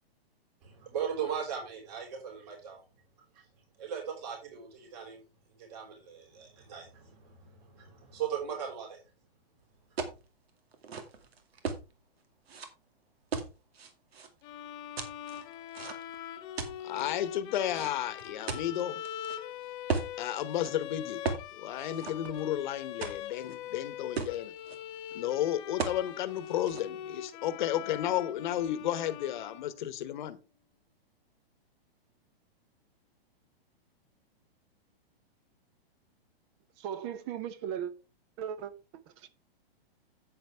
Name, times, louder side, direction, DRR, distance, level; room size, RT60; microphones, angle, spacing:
voice 1, 0.6-2.8 3.3-3.4 3.8-5.2 5.6-9.0, right 8 dB, 45° right, 5.3 m, -38 dB
sound 1, 10.0-10.2 10.7-11.8 12.5-12.7 13.3-14.3 15.0-16.2 16.6-17.0 17.7-19.4 19.9-20.1 20.5-20.7 21.2-21.5 21.8-22.6 23.0-23.6 23.9-24.0 24.2-24.8 25.8-26.0 26.4-26.8, right 5 dB, 85° right, 2.3 m, -36 dB
sound 2, 14.4-30.1, left 10 dB, 15° left, 0.5 m, -42 dB
voice 2, 16.8-19.0 20.2-21.2 21.5-24.5 25.1-30.4, left 11 dB, 50° left, 1.1 m, -33 dB
voice 3, 36.8-37.9 38.4-38.7 39.1-39.3, right 9 dB, 25° right, 0.8 m, -37 dB
9.5 x 8.8 x 3.4 m
hypercardioid pair, 160°, 30 cm